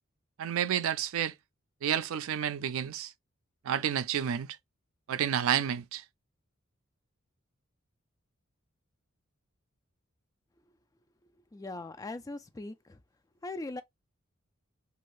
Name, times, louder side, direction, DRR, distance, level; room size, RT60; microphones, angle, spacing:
voice 1, 0.4-1.3 1.8-3.1 3.6-4.6 5.1-6.0, right 9 dB, 70° right, 0.3 m, -30 dB
voice 2, 11.5-13.0 13.4-13.8, left 2 dB, 15° left, 0.4 m, -40 dB
2.6 x 2.4 x 3.1 m
head